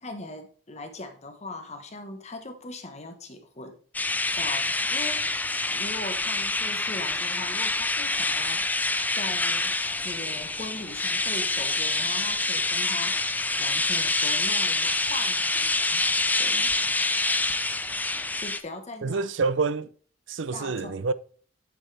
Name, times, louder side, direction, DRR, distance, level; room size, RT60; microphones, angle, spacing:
voice 1, 0.0-3.7 4.4-5.4 5.7-9.7 10.0-17.0 18.4-19.3 20.5-21.0, left 2 dB, 35° left, 1.3 m, -40 dB
sound 1, 3.9-18.6, left 2 dB, 10° left, 0.5 m, -26 dB
voice 2, 19.0-19.9 20.3-21.1, right 4 dB, 90° right, 0.6 m, -27 dB
8.3 x 8.1 x 3.4 m
head